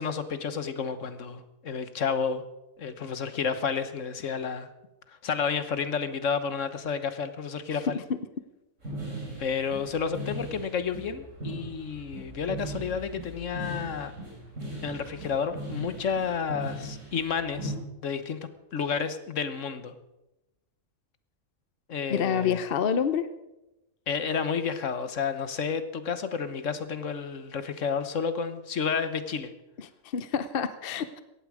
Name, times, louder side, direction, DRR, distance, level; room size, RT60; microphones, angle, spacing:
voice 1, 0.0-2.4 2.8-4.7 5.1-8.0 9.4-14.1 14.8-17.7 18.0-18.4 18.7-19.9 21.9-22.6 24.1-29.5, left 6 dB, 65° left, 11 dB, 1.4 m, -31 dB
voice 2, 7.7-8.2 22.1-23.3 29.8-31.2, left 7 dB, 50° left, 12 dB, 0.8 m, -28 dB
sound 1, 8.8-17.7, right 1 dB, 60° right, 5.4 m, -39 dB
18.0 x 14.5 x 4.9 m, 0.96 s
omnidirectional pair, 1.4 m